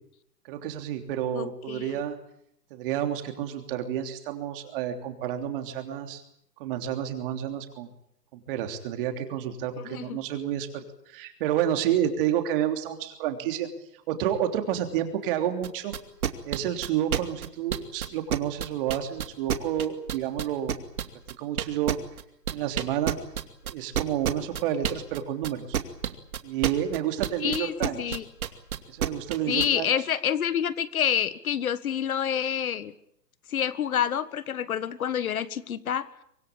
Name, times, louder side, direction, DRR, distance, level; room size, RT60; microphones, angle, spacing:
voice 1, 0.5-2.2 2.7-6.2 6.6-7.9 8.5-13.7 14.1-15.9 16.4-20.7 21.4-22.0 22.5-23.2 23.6-25.7 26.4-28.2 28.9-29.9, right 10 dB, 30° right, 6 dB, 3.3 m, -30 dB
voice 2, 1.3-1.9 9.8-10.2 27.4-28.2 29.5-32.9 33.5-36.1, left 9 dB, 55° left, 15 dB, 1.6 m, -28 dB
sound 1, 15.6-29.7, right 9 dB, 60° right, 2.6 m, -28 dB
25.0 x 19.0 x 8.9 m, 0.74 s
hypercardioid pair, 150°, 49 cm